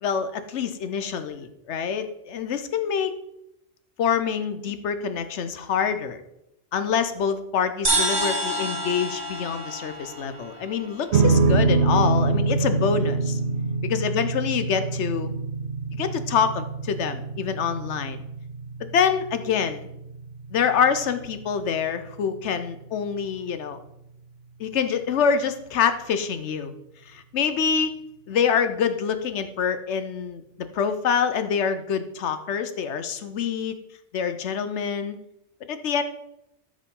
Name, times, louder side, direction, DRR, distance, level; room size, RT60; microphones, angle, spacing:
voice 1, 0.0-3.1 4.0-6.2 6.7-13.4 13.8-15.3 15.9-18.2 18.8-19.9 20.5-23.8 24.6-26.7 27.1-27.9 28.3-30.4 30.7-33.8 34.1-35.2 35.7-36.0, left 7 dB, 75° left, 10 dB, 1.0 m, -26 dB
sound 1, 7.8-11.4, right 1 dB, 45° right, 2.5 m, -28 dB
sound 2, 11.1-23.6, right 3 dB, 70° right, 0.9 m, -26 dB
13.5 x 5.0 x 3.7 m, 0.85 s
omnidirectional pair, 1.2 m